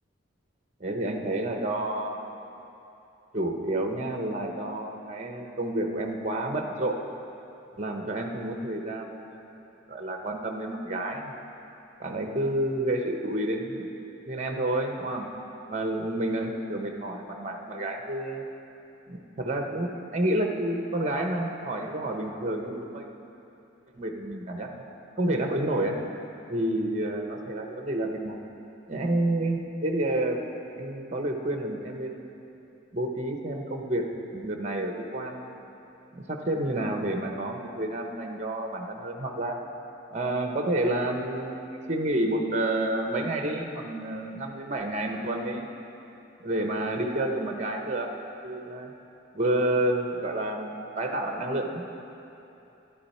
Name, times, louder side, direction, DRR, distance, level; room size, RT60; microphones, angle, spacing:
voice 1, 0.8-2.4 3.3-7.0 7.8-9.5 9.9-11.4 12.0-13.9 14.3-15.3 15.7-18.4 19.1-23.1 24.0-24.8 25.2-26.0 26.5-28.4 28.9-30.4 30.7-32.3 32.9-34.0 34.3-35.6 36.1-39.6 40.1-45.7 46.4-48.1 48.4-48.9 49.3-51.8, right 1 dB, 35° right, 3 dB, 0.9 m, -29 dB
12.5 x 10.5 x 4.3 m, 2.9 s
head